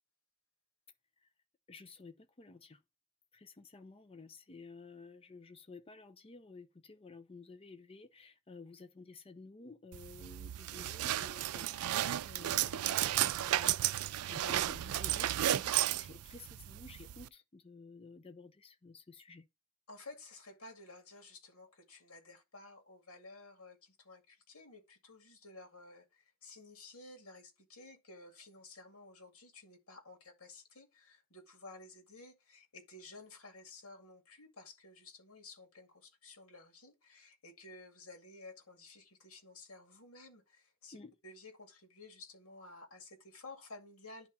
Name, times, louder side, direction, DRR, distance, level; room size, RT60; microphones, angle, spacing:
voice 1, 1.7-2.8 3.3-19.5 40.9-41.1, left 3 dB, 25° left, 0.5 m, -53 dB
sound 1, 9.9-17.3, right 13 dB, 85° right, 0.4 m, -33 dB
voice 2, 19.9-41.0 41.2-44.3, left 3 dB, 85° left, 2.4 m, -54 dB
10.5 x 3.6 x 4.1 m
head